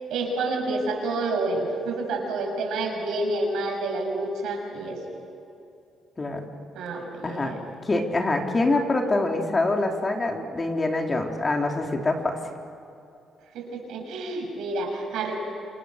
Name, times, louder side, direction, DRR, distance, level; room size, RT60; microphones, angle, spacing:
voice 1, 0.1-5.0 6.7-7.6 13.5-15.4, right 2 dB, 80° right, 1 dB, 6.8 m, -29 dB
voice 2, 6.2-6.5 7.2-7.5 7.8-12.4, left 2 dB, 30° left, 2 dB, 3.6 m, -25 dB
28.0 x 27.5 x 6.6 m, 2.7 s
cardioid pair, 90°, 0 cm